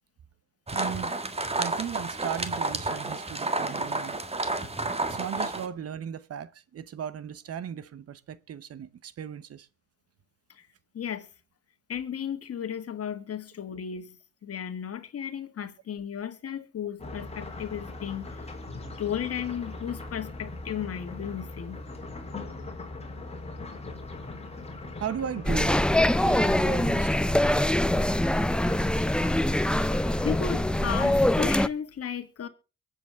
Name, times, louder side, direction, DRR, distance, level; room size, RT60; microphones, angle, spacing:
sound 1, 0.7-5.7, right 2 dB, 20° right, 1.7 m, -30 dB
voice 1, 0.7-1.1 1.6-4.2 5.1-9.7 25.0-25.9 26.2-27.3, right 9 dB, 50° right, 0.8 m, -36 dB
voice 2, 10.9-11.3 11.9-18.4 19.0-21.9 30.2-32.5, left 8 dB, 50° left, 1.8 m, -34 dB
sound 2, 17.0-31.1, left 2 dB, 20° left, 3.5 m, -40 dB
sound 3, 25.4-31.7, left 1 dB, 5° left, 0.5 m, -24 dB
23.0 x 8.2 x 3.5 m
cardioid pair, 90°, 30 cm